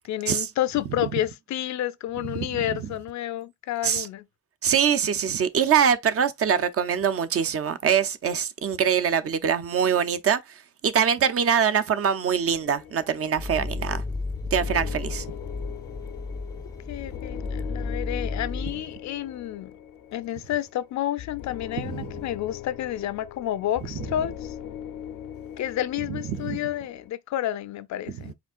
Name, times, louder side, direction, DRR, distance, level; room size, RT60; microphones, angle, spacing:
voice 1, 0.0-4.3 16.9-19.7 20.1-24.5 25.6-28.3, left 12 dB, 65° left, 0.5 m, -30 dB
voice 2, 2.2-2.8 3.8-4.1 4.6-10.4 10.8-14.0 14.5-15.2 21.9-22.0 26.1-26.6, right 7 dB, 50° right, 0.6 m, -24 dB
sound 1, 12.5-27.1, left 10 dB, 90° left, 0.8 m, -41 dB
sound 2, 13.4-18.7, left 3 dB, 15° left, 0.4 m, -33 dB
5.0 x 3.6 x 2.5 m
cardioid pair, 90°, 30 cm